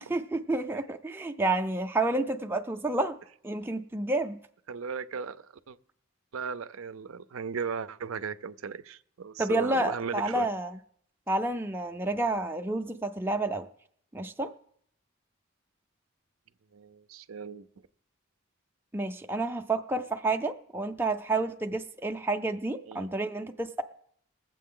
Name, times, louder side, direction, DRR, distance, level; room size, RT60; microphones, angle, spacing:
voice 1, 0.0-3.2 3.4-4.4 9.4-10.8 11.3-13.7 14.1-14.5 18.9-23.8, right 2 dB, 10° right, 0.4 m, -30 dB
voice 2, 4.7-5.8 6.3-10.5 16.7-17.7 22.9-23.1, right 6 dB, 80° right, 0.5 m, -36 dB
21.0 x 7.6 x 3.7 m
head